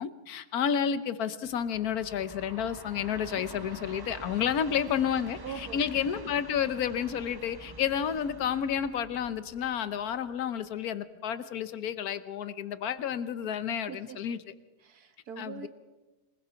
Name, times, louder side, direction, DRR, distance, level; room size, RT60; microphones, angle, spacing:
voice 1, 0.0-14.4 15.4-15.7, left 8 dB, 65° left, 13 dB, 1.4 m, -31 dB
Train, 1.5-10.7, right 2 dB, 20° right, 0.6 m, -47 dB
voice 2, 5.4-5.8 13.9-14.2 14.8-15.7, right 7 dB, 65° right, 9 dB, 1.8 m, -42 dB
26.5 x 19.5 x 5.7 m, 1.2 s
omnidirectional pair, 1.7 m